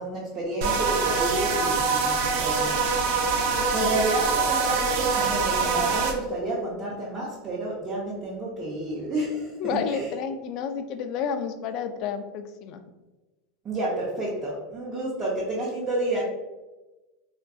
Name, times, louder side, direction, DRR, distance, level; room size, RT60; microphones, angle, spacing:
voice 1, 0.0-2.8 3.1-10.1 13.6-16.2, right 1 dB, 35° right, -6 dB, 0.7 m, -30 dB
sound 1, 0.6-6.1, right 4 dB, 65° right, 0.5 m, -24 dB
voice 2, 3.5-3.9 9.6-12.8, left 6 dB, 55° left, 9 dB, 0.3 m, -31 dB
3.6 x 2.4 x 2.3 m, 1.1 s
supercardioid pair, 120°, 0 cm